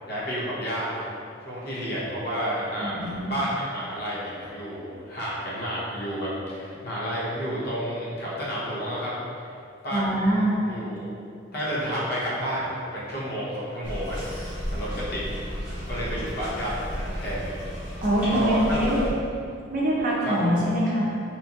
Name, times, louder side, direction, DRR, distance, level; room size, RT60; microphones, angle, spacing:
voice 1, 0.1-1.0 1.4-9.1 9.4-9.5 9.8-11.1 11.5-17.6 18.3-18.9 20.2-20.6, equal, 55° left, -7 dB, 0.7 m, -31 dB
voice 2, 2.8-3.3 9.9-10.6 18.0-19.0 19.7-21.1, equal, 45° right, -5 dB, 0.5 m, -24 dB
Yachts in the wind I - Marina Kornati Biograd na Moru, 13.8-19.1, equal, 10° right, 0.9 m, -33 dB
2.9 x 2.3 x 2.6 m, 2.5 s
head